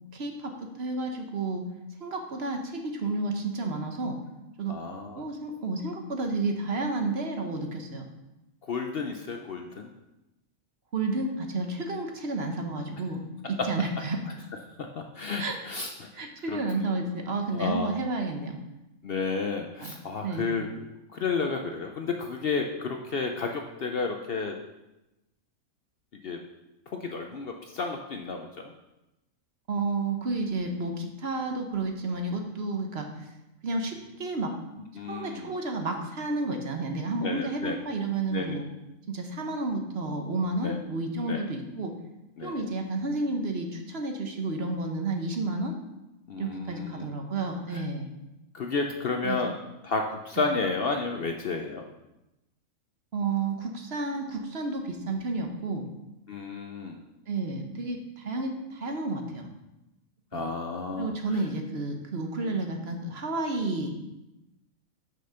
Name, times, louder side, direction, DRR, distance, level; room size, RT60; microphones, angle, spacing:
voice 1, 0.1-1.6 2.0-4.2 4.6-4.8 5.2-8.0 10.9-14.2 15.4-15.6 16.1-18.6 19.8-19.9 20.2-20.5 29.7-33.1 33.6-34.5 35.1-38.6 39.1-41.9 42.4-45.7 46.4-48.1 49.2-49.4 53.1-55.9 57.3-59.5 60.3-60.5 61.0-63.9, right 3 dB, 50° right, 4 dB, 1.1 m, -31 dB
voice 2, 4.7-5.2 8.7-9.9 15.1-16.9 17.5-17.9 19.0-20.7 21.1-24.6 26.2-26.4 26.9-28.5 35.0-35.5 37.2-37.7 38.3-38.6 40.6-40.8 41.2-41.4 42.4-42.6 46.3-47.1 47.7-47.8 48.5-49.5 49.8-51.9 56.3-57.0 60.3-61.1, left 4 dB, 55° left, 3 dB, 0.7 m, -32 dB
6.2 x 5.9 x 5.6 m, 0.95 s
omnidirectional pair, 1.4 m